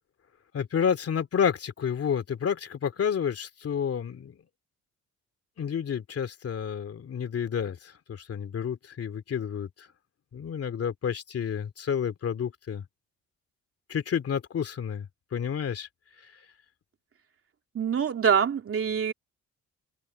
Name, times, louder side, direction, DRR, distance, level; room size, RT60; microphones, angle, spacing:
voice 1, 0.5-4.4 5.6-9.9 10.3-12.9 13.9-15.9, left 7 dB, 50° left, 2.6 m, -30 dB
voice 2, 17.7-19.1, right 7 dB, 45° right, 3.2 m, -25 dB
cardioid pair, 90°, 30 cm